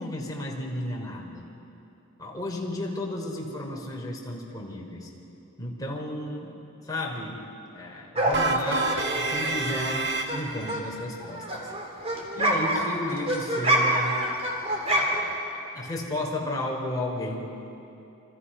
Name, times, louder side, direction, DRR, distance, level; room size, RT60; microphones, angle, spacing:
voice 1, 0.0-1.5 2.2-5.1 5.6-6.5 6.8-7.4 7.7-8.9 9.1-11.7 12.4-14.2 14.9-15.4 15.7-17.5, left 1 dB, 15° left, -2 dB, 3.9 m, -33 dB
sound 1, 8.2-10.4 10.7-15.4, right 1 dB, 30° right, 3.3 m, -27 dB
sound 2, 8.3-10.7, right 3 dB, 50° right, 1.6 m, -28 dB
29.0 x 25.0 x 5.7 m, 2.8 s
head